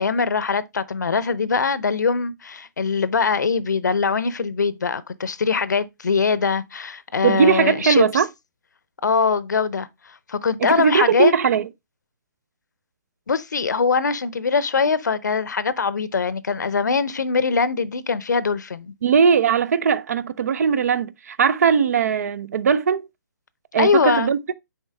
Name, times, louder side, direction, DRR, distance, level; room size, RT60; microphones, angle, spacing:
voice 1, 0.0-8.2 9.0-9.9 10.3-11.3 13.3-18.9 23.8-24.3, left 5 dB, 75° left, 0.6 m, -22 dB
voice 2, 7.2-8.3 10.6-11.7 19.0-23.0 23.7-24.4, right 6 dB, 55° right, 0.5 m, -19 dB
6.6 x 4.5 x 3.3 m
figure-of-eight pair, 135°, 10 cm